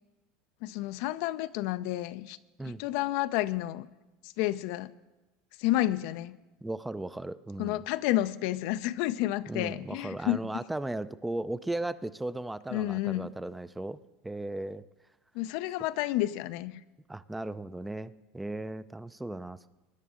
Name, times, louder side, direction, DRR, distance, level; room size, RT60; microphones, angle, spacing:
voice 1, 0.6-2.4 2.6-3.9 4.2-4.9 5.6-6.4 7.6-10.5 12.7-13.3 15.3-16.8, left 15 dB, 65° left, 13 dB, 0.5 m, -30 dB
voice 2, 6.6-7.8 9.5-14.0 14.2-14.8 17.1-19.7, right 2 dB, 10° right, 15 dB, 0.5 m, -36 dB
21.0 x 10.0 x 3.7 m, 1.1 s
hypercardioid pair, 90°, 0 cm